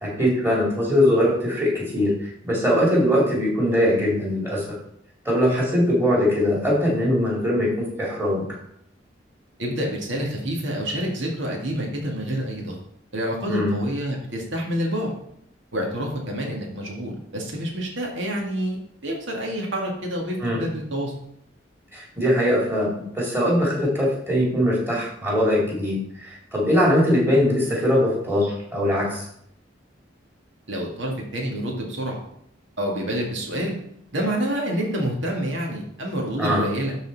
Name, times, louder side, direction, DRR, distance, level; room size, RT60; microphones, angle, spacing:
voice 1, 0.0-4.6 5.2-8.5 13.5-13.7 20.4-20.6 21.9-29.2 36.4-36.6, equal, 10° right, -5 dB, 2.6 m, -21 dB
voice 2, 9.6-12.8 13.1-15.1 15.7-21.1 30.7-32.2 32.8-33.7 34.1-37.0, equal, 75° right, 0 dB, 2.0 m, -28 dB
12.0 x 4.2 x 4.1 m, 0.72 s
head